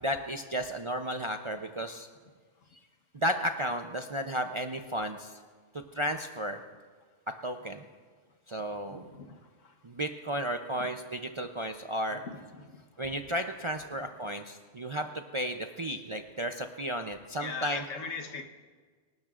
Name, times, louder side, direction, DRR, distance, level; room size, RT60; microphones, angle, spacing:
voice 1, 0.0-2.1 3.1-5.4 5.9-6.6 7.4-7.8 8.5-9.1 9.8-12.2 13.0-17.8, equal, 40° right, 5 dB, 0.4 m, -33 dB
voice 2, 8.9-9.7 10.8-10.9 12.1-12.8 13.9-14.0 17.4-18.4, left 4 dB, 90° left, 4 dB, 1.5 m, -41 dB
26.0 x 12.0 x 2.5 m, 1.5 s
omnidirectional pair, 1.3 m